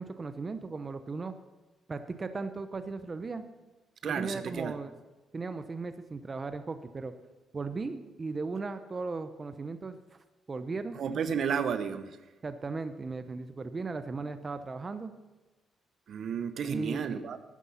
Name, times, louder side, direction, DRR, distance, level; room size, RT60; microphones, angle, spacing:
voice 1, 0.0-1.3 1.9-3.4 4.0-4.9 5.3-7.1 7.5-10.0 10.5-11.0 12.4-15.1 16.6-17.3, right 4 dB, 30° right, 10 dB, 0.7 m, -37 dB
voice 2, 4.0-4.8 11.0-12.2 16.1-17.4, right 7 dB, 60° right, 11 dB, 0.8 m, -32 dB
12.5 x 9.6 x 5.7 m, 1.1 s
cardioid pair, 90°, 0 cm